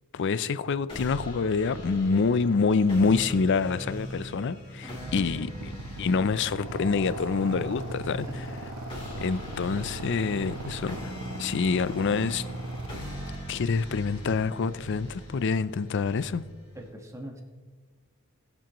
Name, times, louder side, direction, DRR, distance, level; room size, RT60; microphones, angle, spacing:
voice 1, 0.1-5.7 6.0-8.5 9.2-11.1 11.4-12.6 13.5-16.4, left 4 dB, 55° left, 0.4 m, -26 dB
sound 1, 0.9-16.9, equal, 25° left, 3.3 m, -42 dB
voice 2, 4.8-6.1 8.3-8.4 16.7-17.4, equal, 15° right, 1.4 m, -43 dB
Motorcycle / Idling, 5.0-14.9, right 2 dB, 80° right, 0.7 m, -40 dB
sound 2, 6.5-13.7, left 2 dB, 80° left, 2.1 m, -44 dB
21.0 x 7.6 x 3.0 m
head